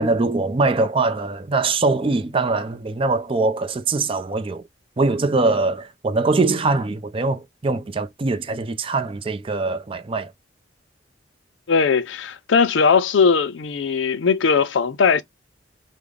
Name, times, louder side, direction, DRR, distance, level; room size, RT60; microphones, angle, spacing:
voice 1, 0.0-4.6 5.0-10.3, right 3 dB, 30° right, 0.5 m, -22 dB
voice 2, 11.7-15.2, left 5 dB, 90° left, 0.5 m, -19 dB
3.8 x 2.1 x 3.2 m
head